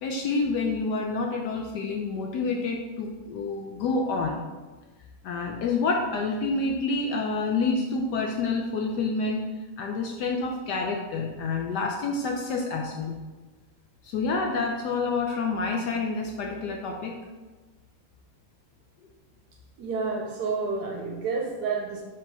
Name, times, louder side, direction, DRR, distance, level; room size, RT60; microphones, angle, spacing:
voice 1, 0.0-4.5 5.2-9.5 9.8-13.2 14.0-17.2, left 3 dB, 70° left, 2 dB, 1.0 m, -28 dB
voice 2, 19.8-22.0, right 4 dB, 65° right, 1 dB, 1.1 m, -29 dB
5.1 x 3.5 x 5.4 m, 1.3 s
omnidirectional pair, 2.2 m